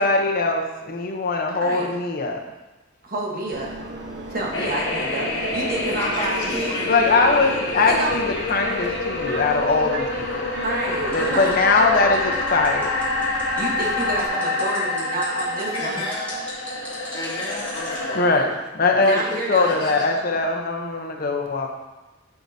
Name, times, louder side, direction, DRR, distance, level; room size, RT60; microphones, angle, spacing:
voice 1, 0.0-2.4 6.9-10.5 11.1-12.9 18.1-18.5 18.7-21.7, left 3 dB, 50° left, 2 dB, 0.8 m, -21 dB
voice 2, 1.5-1.9 3.0-3.7 4.3-6.8 7.8-8.2 10.6-11.5 13.6-16.0 19.0-19.8, right 2 dB, 50° right, -2 dB, 1.4 m, -29 dB
Subway metro underground, 3.5-14.3, right 1 dB, 65° right, 1.0 m, -35 dB
sound 1, 4.5-18.3, left 2 dB, 75° left, 1.3 m, -27 dB
voice 3, 5.9-8.4 15.7-16.4 17.1-18.4 19.0-19.4 19.6-20.2, left 1 dB, 30° left, -8 dB, 2.5 m, -34 dB
sound 2, 11.1-18.0, left 2 dB, 10° left, 2.3 m, -39 dB
10.5 x 4.7 x 2.8 m, 1.1 s
head